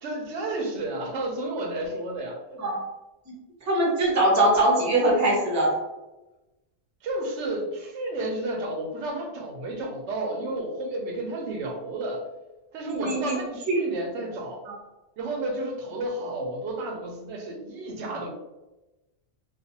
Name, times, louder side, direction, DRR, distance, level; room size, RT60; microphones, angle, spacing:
voice 1, 0.0-2.6 7.0-12.2 12.7-14.6 15.2-18.3, right 1 dB, 85° right, 1 dB, 0.9 m, -32 dB
voice 2, 3.7-5.7 13.0-13.3 13.7-13.8 14.7-14.8, right 1 dB, 20° right, -3 dB, 0.5 m, -22 dB
2.4 x 2.2 x 2.7 m, 1.0 s
omnidirectional pair, 1.1 m